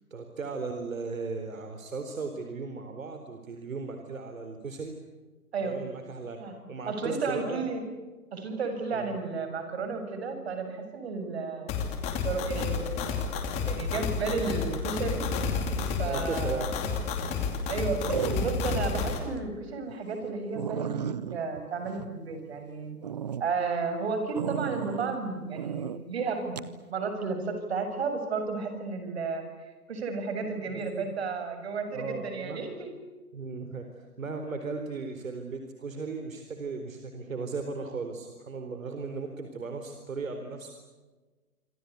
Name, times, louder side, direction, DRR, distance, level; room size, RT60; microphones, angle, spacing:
voice 1, 0.1-5.0 5.6-6.4 6.7-7.6 8.9-9.2 16.0-16.7 18.2-18.5 30.7-31.1 31.9-32.6 33.3-33.9 34.2-40.8, right 4 dB, 65° right, 6 dB, 4.2 m, -36 dB
voice 2, 6.9-7.8 8.3-11.7 12.0-13.1 13.7-15.2 15.6-16.7 17.7-18.0 18.3-23.0 23.4-29.5 29.9-32.9, right 4 dB, 45° right, 7 dB, 6.9 m, -33 dB
sound 1, 11.7-19.2, left 5 dB, 15° left, 2.7 m, -30 dB
sound 2, 16.7-16.9 18.1-18.8 19.3-19.4 19.9-20.0 20.2-20.3 20.6-22.6 23.0-23.4 24.4-25.2 25.6-26.0 26.6-26.7, right 8 dB, 30° right, 0.8 m, -34 dB
27.0 x 25.5 x 8.4 m, 1.3 s
hypercardioid pair, 155°, 44 cm